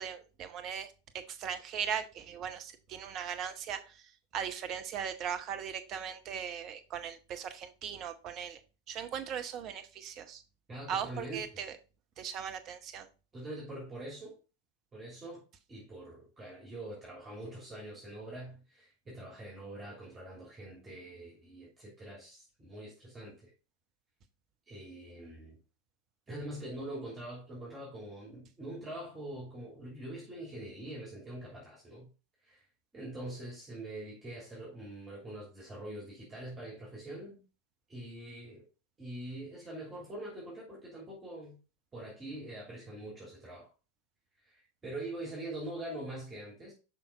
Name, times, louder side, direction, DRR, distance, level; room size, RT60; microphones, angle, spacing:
voice 1, 0.0-3.8 4.3-8.6 8.9-10.4 10.9-11.7 12.2-13.1, right 8 dB, 35° right, 0.9 m, -38 dB
voice 2, 10.7-11.7 13.3-14.4 14.9-15.4 15.7-23.5 24.7-25.6 26.3-32.1 32.4-32.6 32.9-37.4 37.9-38.6 39.0-41.6 41.9-43.7 44.4-46.7, right 1 dB, 20° right, 3.0 m, -44 dB
5.9 x 5.7 x 3.9 m
figure-of-eight pair, 90°, 0 cm